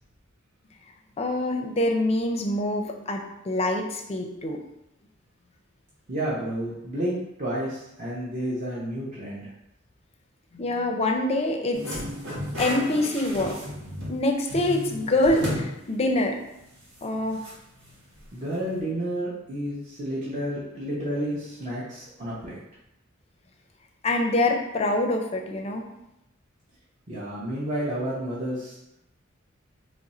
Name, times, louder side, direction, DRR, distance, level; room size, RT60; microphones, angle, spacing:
voice 1, 1.2-4.6 10.5-12.0 12.6-13.6 14.1-16.4 17.0-17.4 24.0-25.8, left 1 dB, 30° left, 2 dB, 0.5 m, -25 dB
voice 2, 6.1-9.5 18.3-22.6 27.1-28.8, right 1 dB, 40° right, -8 dB, 0.7 m, -31 dB
sound 1, 11.7-14.2 14.5-15.7 16.1-16.2 17.4-17.5, equal, 80° right, 1.3 m, -33 dB
3.1 x 2.5 x 4.1 m, 0.84 s
head